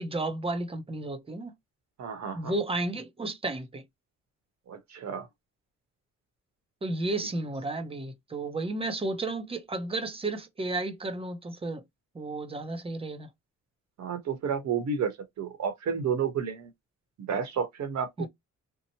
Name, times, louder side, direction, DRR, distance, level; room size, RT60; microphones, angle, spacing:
voice 1, 0.0-1.5 2.3-3.8 6.8-11.8 12.1-13.3 18.2-18.3, right 2 dB, 20° right, 0.7 m, -32 dB
voice 2, 2.0-2.5 4.7-5.3 14.0-15.1 15.4-16.7 17.3-18.3, right 6 dB, 65° right, 1.0 m, -31 dB
2.8 x 2.1 x 2.8 m
cardioid pair, 90°, 30 cm